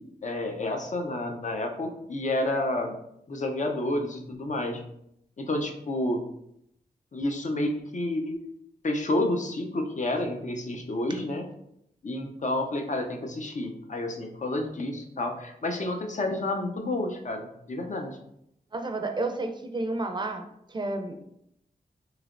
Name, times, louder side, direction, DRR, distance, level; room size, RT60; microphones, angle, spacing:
voice 1, 0.0-2.9 3.3-4.8 5.4-6.2 7.1-8.4 8.8-11.4 12.0-18.2, left 1 dB, 45° left, 3 dB, 0.6 m, -30 dB
voice 2, 18.7-21.2, right 2 dB, 25° right, 5 dB, 0.5 m, -31 dB
3.1 x 2.8 x 2.5 m, 0.76 s
cardioid pair, 45°, 17 cm